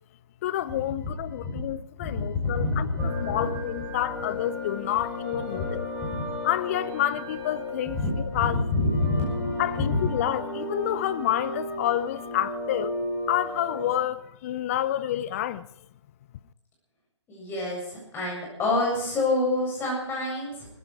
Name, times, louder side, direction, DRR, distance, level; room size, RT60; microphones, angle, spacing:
voice 1, 0.4-5.9 6.4-8.0 8.3-8.6 9.6-12.9 13.3-15.7, left 12 dB, 30° left, 0.6 m, -29 dB
voice 2, 2.0-3.5 5.5-5.7 6.1-6.2 7.9-10.0 17.3-20.7, left 2 dB, 15° left, 7.7 m, -27 dB
sound 1, 3.0-14.0, left 2 dB, 20° right, 4.2 m, -35 dB
19.5 x 15.0 x 4.8 m
figure-of-eight pair, 135°, 15 cm